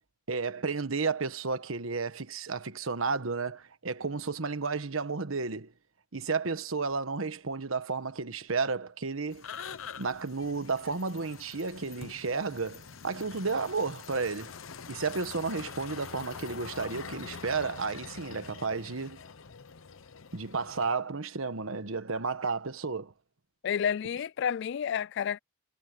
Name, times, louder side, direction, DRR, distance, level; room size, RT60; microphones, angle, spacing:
voice 1, 0.3-5.7 6.1-9.4 10.0-14.5 14.9-19.2 20.3-23.1, right 4 dB, 85° right, 1.2 m, -32 dB
sound 1, 9.3-21.0, left 6 dB, 80° left, 0.9 m, -45 dB
voice 2, 23.6-25.4, left 8 dB, 60° left, 0.3 m, -30 dB
head